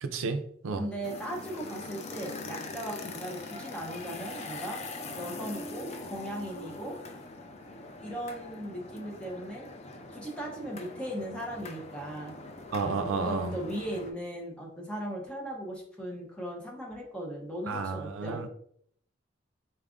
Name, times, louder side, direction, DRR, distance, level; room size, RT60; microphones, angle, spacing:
voice 1, 0.0-0.8 12.7-13.6 17.7-18.5, right 4 dB, 85° right, 8 dB, 0.4 m, -31 dB
voice 2, 0.8-4.8 5.2-7.0 8.0-9.7 10.1-12.4 13.1-18.5, right 1 dB, 5° left, -2 dB, 0.7 m, -38 dB
sound 1, 1.0-14.1, left 2 dB, 35° left, 0.4 m, -42 dB
3.9 x 2.4 x 3.6 m, 0.66 s
head